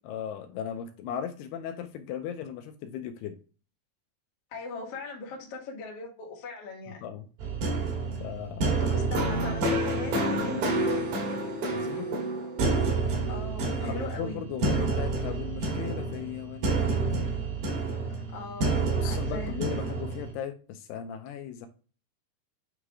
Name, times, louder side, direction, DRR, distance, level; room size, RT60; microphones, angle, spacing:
voice 1, 0.1-3.4 7.0-7.3 8.2-9.1 11.7-12.1 13.8-17.3 19.0-21.7, left 8 dB, 80° left, 2.5 m, -37 dB
voice 2, 4.5-7.0 8.8-10.8 13.3-14.4 18.1-19.6, left 4 dB, 55° left, 1.8 m, -39 dB
sound 1, 7.4-20.3, right 3 dB, 65° right, 3.3 m, -29 dB
9.0 x 3.2 x 3.6 m
omnidirectional pair, 4.8 m